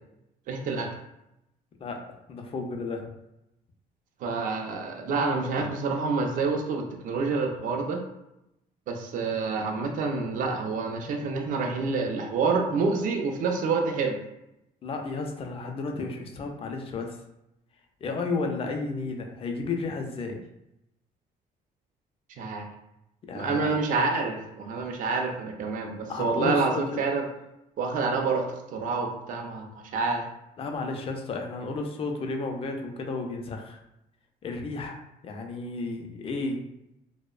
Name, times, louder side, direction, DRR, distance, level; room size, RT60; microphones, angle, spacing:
voice 1, 0.5-0.9 4.2-8.0 8.9-14.2 22.4-22.7 23.3-27.2 27.8-28.5 28.7-30.2, right 4 dB, 55° right, 3 dB, 0.4 m, -28 dB
voice 2, 2.3-3.1 14.8-17.2 18.0-20.4 23.2-23.8 26.1-27.0 30.6-33.8 34.4-36.6, left 3 dB, 35° left, 3 dB, 0.4 m, -32 dB
2.6 x 2.0 x 2.3 m, 0.87 s
cardioid pair, 125°, 16 cm